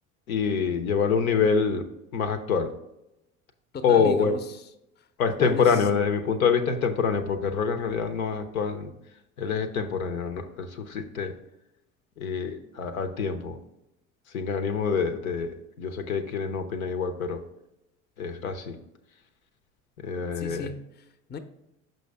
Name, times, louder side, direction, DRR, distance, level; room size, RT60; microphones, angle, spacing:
voice 1, 0.3-2.7 3.8-4.3 5.2-8.9 9.4-11.4 12.2-13.6 14.3-17.4 18.2-18.8 20.0-20.7, left 6 dB, 85° left, 8 dB, 0.7 m, -26 dB
voice 2, 3.7-4.6 5.0-5.1 5.4-5.9 20.4-21.4, left 5 dB, 25° left, 10 dB, 0.6 m, -36 dB
6.2 x 5.3 x 3.4 m, 0.87 s
hypercardioid pair, 70°, 42 cm